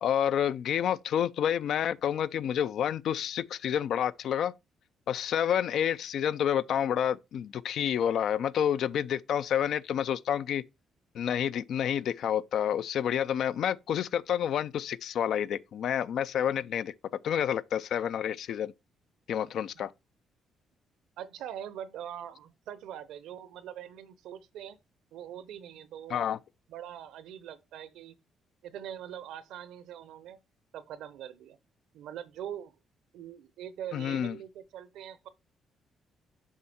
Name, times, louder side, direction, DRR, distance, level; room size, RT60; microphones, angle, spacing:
voice 1, 0.0-4.5 5.1-10.6 11.1-16.9 17.2-18.7 19.3-19.9 26.1-26.4 33.9-34.4, left 9 dB, 70° left, 0.4 m, -29 dB
voice 2, 21.2-24.8 25.1-26.3 26.7-28.2 28.6-30.4 30.7-31.6 31.9-32.7 33.1-35.3, right 10 dB, 85° right, 0.8 m, -43 dB
7.4 x 5.3 x 4.2 m
cardioid pair, 90°, 0 cm